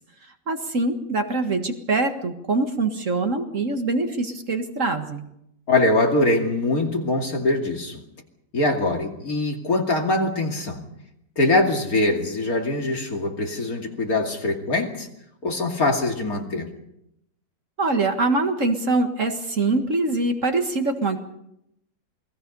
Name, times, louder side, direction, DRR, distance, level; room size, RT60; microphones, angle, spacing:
voice 1, 0.5-5.2 17.8-21.2, right 3 dB, 45° right, 5 dB, 2.0 m, -24 dB
voice 2, 5.7-8.0 8.5-10.8 11.4-15.1 15.4-16.7, left 2 dB, 55° left, 2 dB, 3.0 m, -23 dB
28.5 x 20.0 x 5.4 m, 0.80 s
omnidirectional pair, 1.9 m